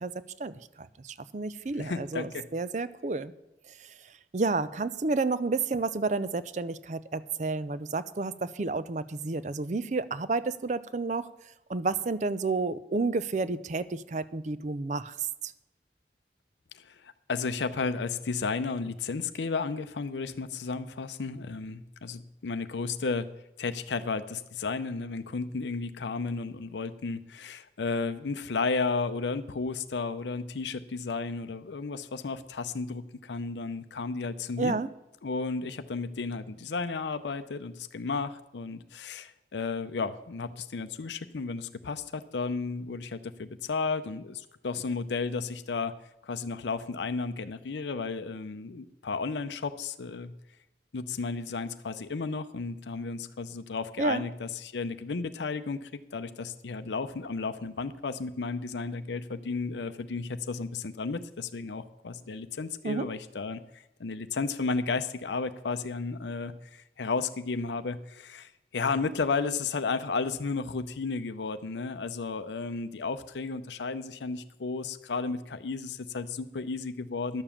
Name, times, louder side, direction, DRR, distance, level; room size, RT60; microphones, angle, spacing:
voice 1, 0.4-3.3 4.3-11.3 11.7-15.1 15.4-15.5 34.6-34.9 54.0-54.3 62.8-63.1, right 3 dB, 40° right, 15 dB, 0.5 m, -30 dB
voice 2, 1.7-2.5 16.7-23.3 23.6-34.8 35.2-50.3 50.9-77.4, left 4 dB, 85° left, 10 dB, 0.6 m, -33 dB
11.5 x 7.0 x 7.2 m, 0.95 s
head